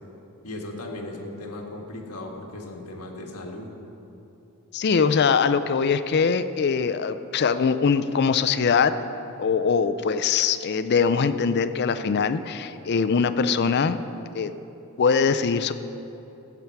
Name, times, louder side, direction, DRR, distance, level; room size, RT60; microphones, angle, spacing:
voice 1, 0.4-3.7, left 1 dB, 90° left, 1 dB, 1.6 m, -37 dB
voice 2, 4.7-8.9 9.4-14.0 14.3-14.5 15.0-15.7, left 5 dB, 50° left, 12 dB, 0.4 m, -22 dB
14.5 x 8.3 x 4.6 m, 2.9 s
head